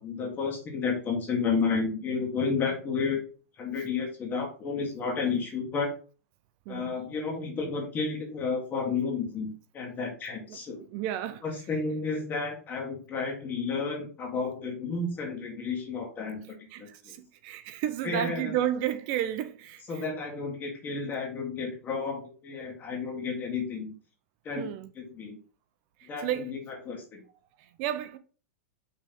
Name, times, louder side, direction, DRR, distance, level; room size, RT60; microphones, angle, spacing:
voice 1, 0.0-3.2 3.6-5.9 6.7-10.8 11.4-17.1 18.0-18.5 19.9-24.0 24.4-24.7 25.0-25.4 26.0-27.2, left 4 dB, 20° left, 1.6 m, -32 dB
voice 2, 10.9-11.4 16.7-20.0 24.6-24.9 26.0-26.5 27.6-28.2, right 11 dB, 45° right, 0.6 m, -32 dB
5.7 x 3.4 x 5.2 m
hypercardioid pair, 145°, 8 cm